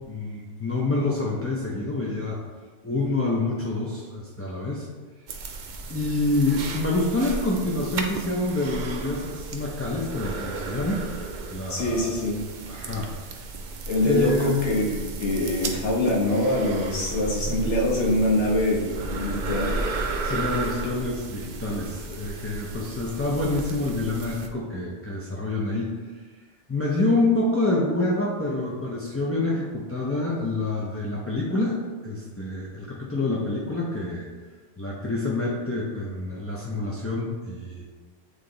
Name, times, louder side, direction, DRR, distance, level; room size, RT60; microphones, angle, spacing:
voice 1, 0.0-2.4 2.8-4.9 5.9-11.0 11.5-12.2 12.7-13.1 14.0-14.7 20.2-25.9 26.7-31.7 32.0-34.3 34.8-37.8, left 2 dB, 20° left, -5 dB, 0.4 m, -27 dB
sound 1, 5.3-24.5, right 3 dB, 55° right, 0.5 m, -34 dB
voice 2, 11.7-12.4 13.9-19.7, left 1 dB, 65° left, -3 dB, 1.5 m, -24 dB
7.5 x 3.3 x 3.8 m, 1.4 s
omnidirectional pair, 1.3 m